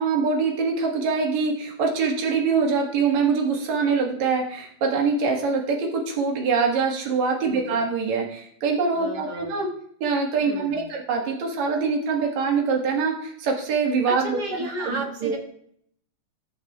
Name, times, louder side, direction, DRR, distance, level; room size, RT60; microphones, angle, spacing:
voice 1, 0.0-9.7 10.0-15.4, right 5 dB, 75° right, 1 dB, 2.8 m, -24 dB
voice 2, 7.5-7.9 9.0-9.5 10.4-10.9 14.0-15.4, right 1 dB, 40° right, 1 dB, 1.7 m, -33 dB
17.5 x 6.8 x 2.3 m, 0.66 s
omnidirectional pair, 3.3 m